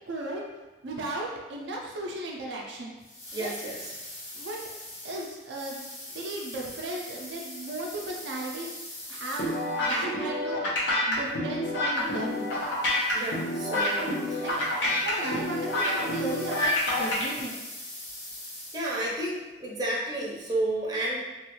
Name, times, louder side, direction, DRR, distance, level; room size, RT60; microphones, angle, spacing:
voice 1, 0.1-0.5 0.8-2.9 3.4-3.5 4.3-4.6 5.0-5.9 6.1-8.8 9.1-10.6 11.1-12.5 14.4-17.6, right 2 dB, 75° right, -2 dB, 0.5 m, -35 dB
sound 1, 3.0-10.0 11.9-19.2, left 1 dB, 40° left, 1.0 m, -43 dB
voice 2, 3.3-4.0 13.1-14.7 18.7-21.2, right 1 dB, 20° right, -5 dB, 0.6 m, -32 dB
sound 2, 9.4-17.2, left 1 dB, 80° left, 0.8 m, -28 dB
3.0 x 2.3 x 3.0 m, 1.1 s
head